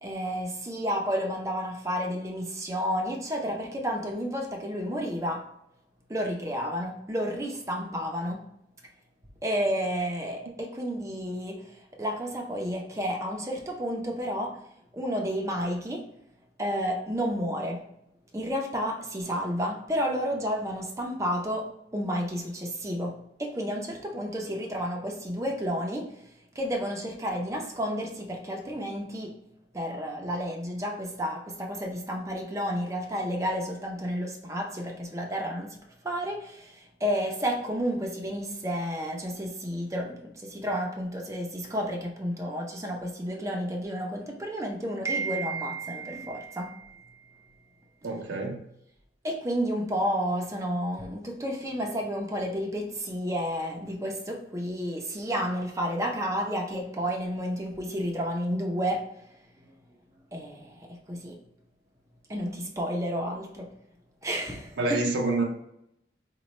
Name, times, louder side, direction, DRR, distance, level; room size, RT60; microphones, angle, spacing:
voice 1, 0.0-5.5 6.1-8.5 9.4-14.6 14.9-16.1 16.6-17.8 18.3-26.2 26.5-29.4 29.7-47.5 49.2-59.1 59.6-59.7 60.3-61.4 62.3-63.7 64.2-65.1, equal, 15° right, 0 dB, 0.5 m, -31 dB
voice 2, 48.0-48.6 64.8-65.4, right 2 dB, 80° right, 0 dB, 0.5 m, -27 dB
4.1 x 2.2 x 3.0 m, 0.78 s
head